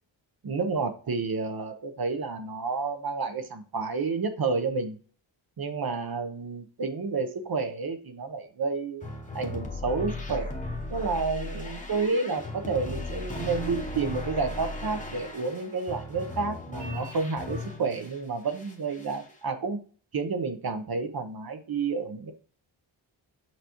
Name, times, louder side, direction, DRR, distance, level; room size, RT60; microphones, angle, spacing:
voice 1, 0.4-5.0 5.6-9.1 9.3-10.5 10.9-19.8 20.1-22.3, right 4 dB, 50° right, 7 dB, 0.9 m, -30 dB
sound 1, 9.0-18.2 18.5-19.3, left 2 dB, 15° left, 0.9 m, -37 dB
5.9 x 5.7 x 3.0 m, 0.40 s
wide cardioid pair, 155°, 47 cm